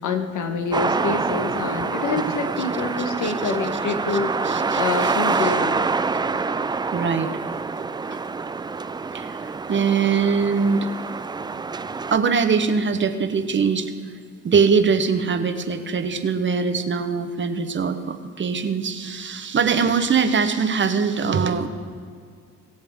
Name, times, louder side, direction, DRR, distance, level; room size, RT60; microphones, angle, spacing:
voice 1, 0.0-5.9, left 4 dB, 80° left, 5 dB, 1.4 m, -26 dB
sound 1, 0.7-12.2, right 4 dB, 15° right, 0.3 m, -26 dB
voice 2, 4.4-4.8 5.4-5.5 6.9-7.4 7.8-8.2 9.1-10.9 12.1-13.9 14.4-21.7, right 5 dB, 40° right, 9 dB, 1.0 m, -22 dB
23.0 x 7.9 x 3.6 m, 2.1 s
cardioid pair, 90°, 30 cm